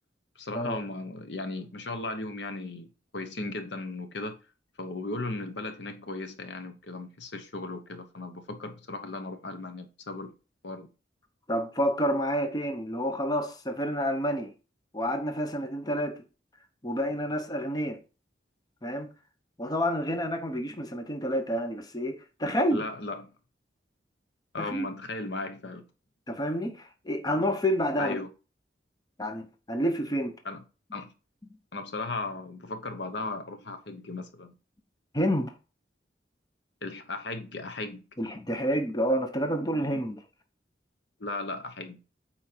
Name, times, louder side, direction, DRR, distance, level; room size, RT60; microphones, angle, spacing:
voice 1, 0.4-4.4 4.8-10.3 10.6-10.9 22.7-23.3 24.5-25.8 28.0-28.3 30.4-30.6 30.9-31.1 31.7-34.5 36.8-38.0 41.2-42.0, left 2 dB, 70° left, 1.0 m, -36 dB
voice 2, 11.5-14.5 14.9-16.2 16.8-18.0 18.8-19.1 19.6-22.8 24.6-24.9 26.3-28.2 29.2-30.4 35.1-35.5 38.2-40.2, equal, 20° left, 0.9 m, -29 dB
8.7 x 4.4 x 4.5 m
head